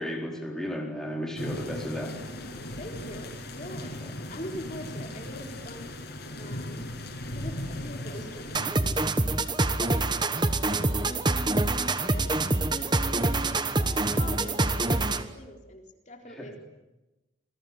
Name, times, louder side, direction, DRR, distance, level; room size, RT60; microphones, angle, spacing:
voice 1, 0.0-2.2 9.4-9.6 16.4-16.6, equal, ahead, 0 dB, 4.1 m, -34 dB
sound 1, 1.4-8.7, left 1 dB, 55° left, 6.7 m, -37 dB
voice 2, 2.8-4.0 4.3-5.9 6.4-6.9 7.3-9.0 9.6-11.2 12.0-16.6, equal, 35° left, 3 dB, 4.0 m, -43 dB
sound 2, 8.5-15.3, right 2 dB, 20° right, 1.2 m, -26 dB
29.0 x 21.5 x 9.6 m, 1.0 s
head